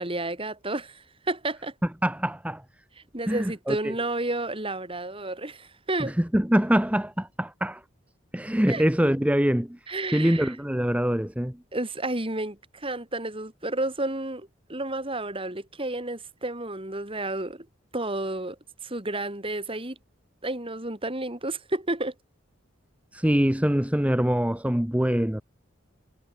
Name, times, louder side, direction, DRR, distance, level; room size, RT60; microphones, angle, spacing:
voice 1, 0.0-1.7 3.0-6.2 8.7-8.8 9.9-10.6 11.7-17.7 17.9-20.0 20.4-22.1, right 2 dB, 30° right, 4.5 m, -31 dB
voice 2, 2.0-2.6 3.3-3.9 6.0-7.8 8.3-9.8 10.1-11.6 23.1-25.4, equal, 5° right, 1.1 m, -24 dB
head